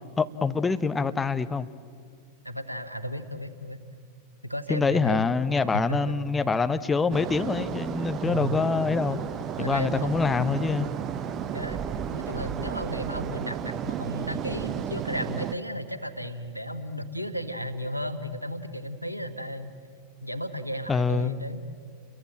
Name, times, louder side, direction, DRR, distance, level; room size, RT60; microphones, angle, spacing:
voice 1, 0.2-1.7 4.7-9.2 9.6-10.9 20.9-21.3, left 4 dB, 15° left, 11 dB, 0.9 m, -25 dB
voice 2, 2.4-3.8 4.4-5.3 5.7-6.1 8.2-8.6 9.6-10.6 11.4-19.8 20.2-21.6, equal, 90° right, 11 dB, 1.4 m, -34 dB
sound 1, 7.1-15.5, right 9 dB, 30° right, 0.9 m, -33 dB
30.0 x 22.5 x 7.5 m, 2.2 s
figure-of-eight pair, 90°, 0 cm